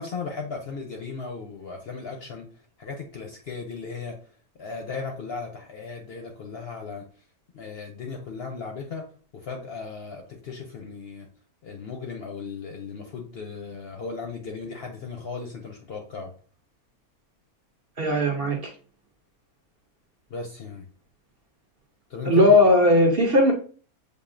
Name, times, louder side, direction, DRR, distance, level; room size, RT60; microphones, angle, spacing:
voice 1, 0.0-2.4 2.8-4.2 4.6-7.0 7.5-9.0 9.4-11.3 11.6-16.3 20.3-20.8 22.1-22.5, left 4 dB, 55° left, 2 dB, 0.7 m, -36 dB
voice 2, 18.0-18.6 22.2-23.5, left 1 dB, 50° right, 1 dB, 0.8 m, -17 dB
6.8 x 2.6 x 2.5 m, 0.41 s
omnidirectional pair, 1.6 m